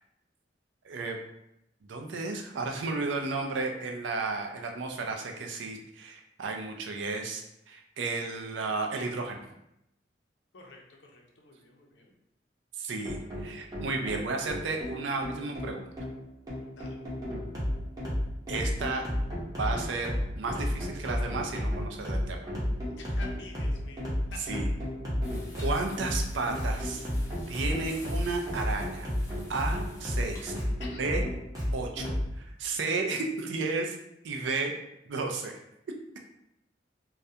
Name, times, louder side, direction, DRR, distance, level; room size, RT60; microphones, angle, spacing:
voice 1, 0.8-1.2 1.8-9.4 12.8-15.9 18.5-19.0 19.3-22.5 24.5-24.7 25.6-27.1 27.5-29.1 29.5-30.6 31.0-31.2 31.7-34.0 34.2-34.7 35.1-35.5, right 3 dB, 85° right, 3 dB, 0.4 m, -33 dB
voice 2, 10.5-12.1 16.7-17.0 23.0-24.6 30.8-31.0, left 3 dB, 75° left, 0 dB, 0.5 m, -48 dB
sound 1, 13.0-32.3, equal, 20° right, 0.7 m, -32 dB
sound 2, 25.2-30.4, left 1 dB, 20° left, 0.4 m, -51 dB
2.3 x 2.1 x 2.7 m, 0.81 s
head